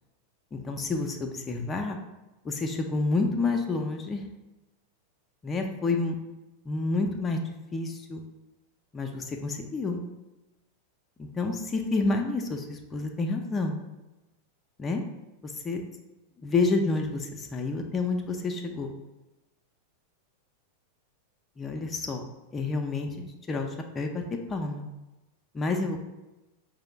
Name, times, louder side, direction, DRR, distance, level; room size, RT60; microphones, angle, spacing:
voice 1, 0.5-2.0 2.4-4.2 5.4-6.2 6.7-7.4 7.7-8.2 8.9-10.0 11.2-13.8 14.8-15.0 15.4-15.8 16.4-18.9 21.6-22.2 22.5-23.7 23.9-24.8 25.5-26.1, left 3 dB, 20° left, 3 dB, 0.4 m, -29 dB
4.9 x 2.0 x 4.5 m, 1.0 s
figure-of-eight pair, 90°, 0 cm